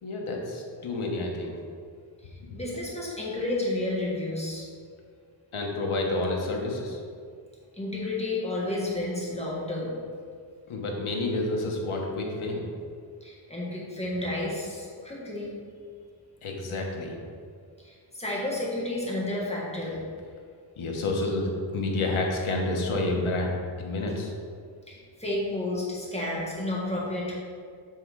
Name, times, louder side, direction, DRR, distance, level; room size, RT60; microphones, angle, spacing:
voice 1, 0.0-1.5 5.5-7.0 10.7-12.6 16.4-17.1 20.8-24.3, left 2 dB, 85° left, 0 dB, 1.2 m, -29 dB
voice 2, 2.2-4.7 7.7-9.9 13.2-15.5 17.8-20.0 24.9-27.3, left 1 dB, 15° left, -5 dB, 1.4 m, -31 dB
7.8 x 3.7 x 4.7 m, 2.1 s
wide cardioid pair, 150°, 48 cm